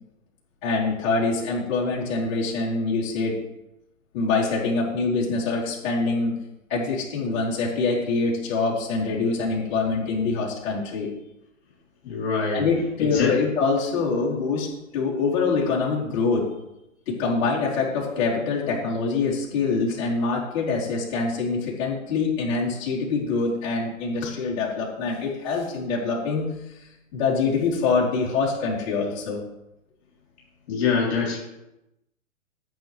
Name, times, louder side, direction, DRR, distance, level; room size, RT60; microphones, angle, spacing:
voice 1, 0.6-3.4 4.1-6.3 6.7-11.1 12.5-16.5 17.1-26.8 27.1-29.4, left 4 dB, 35° left, -6 dB, 4.2 m, -25 dB
voice 2, 12.0-12.7 13.0-13.3 30.7-31.4, left 5 dB, 50° left, -4 dB, 3.7 m, -24 dB
14.5 x 7.7 x 3.5 m, 0.90 s
figure-of-eight pair, 130°, 41 cm